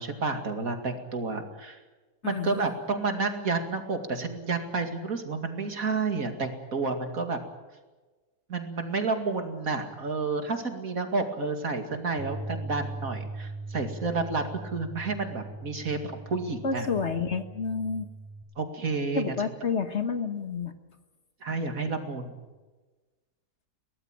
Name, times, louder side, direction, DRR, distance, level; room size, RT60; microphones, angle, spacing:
voice 1, 0.0-1.8 2.2-7.4 8.5-16.9 18.6-19.3 21.4-22.3, right 3 dB, 60° right, 6 dB, 2.8 m, -30 dB
voice 2, 2.2-2.6 16.6-18.1 19.1-20.7, left 5 dB, 45° left, 8 dB, 1.6 m, -29 dB
Bass guitar, 12.2-18.4, right 3 dB, 20° right, 5.9 m, -40 dB
23.5 x 18.0 x 9.1 m, 1.2 s
omnidirectional pair, 1.7 m